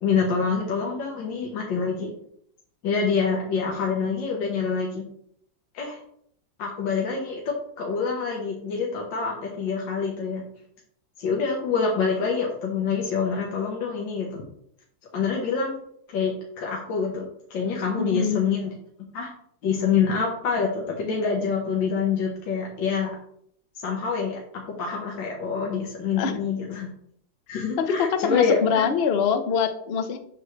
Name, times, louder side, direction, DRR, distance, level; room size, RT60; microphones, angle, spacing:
voice 1, 0.0-2.1 2.8-5.0 5.7-6.0 6.6-10.4 11.2-14.4 15.1-15.7 16.1-18.7 19.1-19.3 19.6-23.1 23.8-26.9 27.5-28.9, left 5 dB, 80° left, -1 dB, 1.8 m, -26 dB
voice 2, 18.0-18.4 26.2-26.3 27.8-30.2, left 6 dB, 55° left, 8 dB, 0.7 m, -24 dB
8.0 x 3.2 x 6.4 m, 0.67 s
omnidirectional pair, 2.0 m